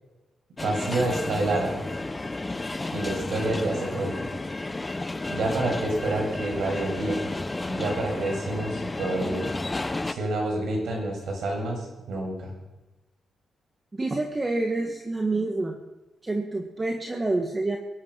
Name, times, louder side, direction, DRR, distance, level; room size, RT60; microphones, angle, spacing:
sound 1, 0.6-10.1, left 2 dB, 15° left, 0.7 m, -32 dB
voice 1, 0.6-1.8 2.9-4.3 5.3-7.3 7.7-9.5 10.0-12.5, right 2 dB, 75° right, 0 dB, 7.0 m, -28 dB
voice 2, 13.9-15.8 16.2-17.8, right 2 dB, 20° right, 3 dB, 1.6 m, -27 dB
22.5 x 11.0 x 5.7 m, 1.1 s
cardioid pair, 130°, 0 cm